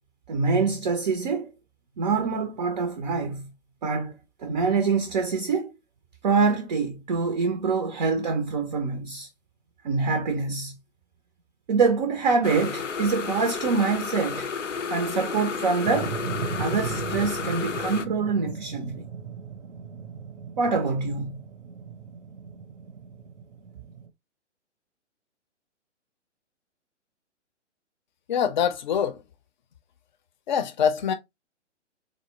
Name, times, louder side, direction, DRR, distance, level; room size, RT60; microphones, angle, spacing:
voice 1, 0.3-1.5 2.0-3.5 3.8-5.7 6.2-9.3 9.8-10.8 11.7-14.5 14.9-16.2 16.6-19.0 20.6-21.4, right 4 dB, 40° right, 0.4 m, -25 dB
sound 1, 12.4-18.1, left 5 dB, 90° left, 0.5 m, -32 dB
sound 2, 15.8-24.1, right 6 dB, 75° right, 0.7 m, -37 dB
voice 2, 28.3-29.2 30.5-31.1, left 8 dB, 40° left, 0.5 m, -24 dB
4.0 x 2.0 x 2.9 m
figure-of-eight pair, 125°, 36 cm